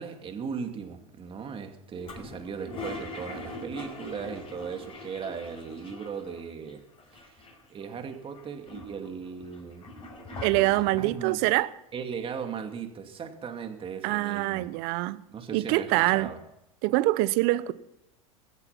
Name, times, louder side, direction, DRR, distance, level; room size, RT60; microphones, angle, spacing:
voice 1, 0.0-6.8 7.1-9.9 11.0-11.4 11.9-14.7 15.3-16.4, right 6 dB, 30° right, 2.5 m, -38 dB
Toilet flush, 2.0-6.4 6.7-6.8 7.0-7.8 8.3-11.2, left 2 dB, 30° left, 5.6 m, -41 dB
voice 2, 10.4-11.7 14.0-15.2 15.5-16.3 16.8-17.7, right 19 dB, 55° right, 0.9 m, -24 dB
22.5 x 8.2 x 5.9 m
hypercardioid pair, 100°, 18 cm